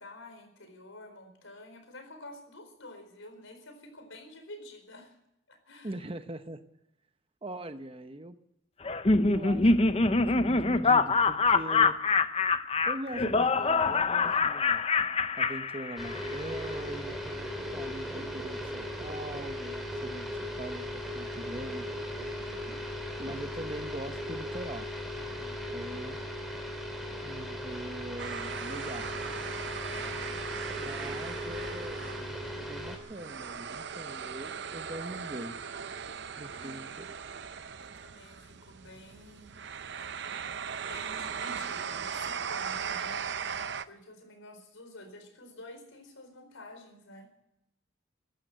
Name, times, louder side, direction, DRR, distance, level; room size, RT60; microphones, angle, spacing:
voice 1, 0.0-5.2 5.5-6.0 22.3-22.8 29.8-30.2 36.5-37.1 37.8-39.6 40.8-43.4 43.8-47.3, left 1 dB, 80° left, 7 dB, 4.4 m, -50 dB
voice 2, 5.8-6.6 7.4-8.4 9.2-12.0 12.8-14.8 15.4-17.2 17.7-20.3 20.6-21.9 23.2-24.9 25.4-26.2 27.2-29.1 30.8-35.6 36.4-37.1, right 1 dB, 25° right, 10 dB, 0.9 m, -42 dB
Laughter, 8.8-16.3, left 3 dB, 30° left, 0.7 m, -25 dB
sound 1, 16.0-33.0, left 1 dB, ahead, 3.1 m, -37 dB
sound 2, 28.2-43.9, right 7 dB, 55° right, 0.7 m, -38 dB
15.5 x 12.0 x 7.8 m, 0.81 s
head